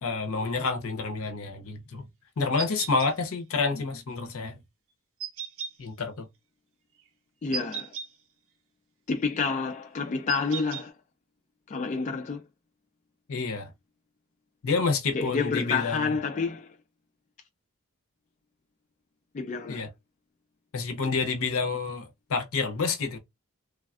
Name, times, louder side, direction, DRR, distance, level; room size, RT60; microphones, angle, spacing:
voice 1, 0.0-2.1 2.4-4.6 5.8-6.3 13.3-13.7 14.6-16.1 19.7-19.9 20.7-23.2, left 4 dB, 70° left, 0.6 m, -29 dB
sound 1, 2.6-3.1 5.2-5.7 7.5-8.1 10.3-10.8, right 7 dB, 65° right, 0.7 m, -35 dB
voice 2, 7.4-7.9 9.1-10.9 11.7-12.4 15.1-16.7 19.3-19.9, left 5 dB, 35° left, 0.3 m, -29 dB
3.3 x 2.2 x 2.3 m
head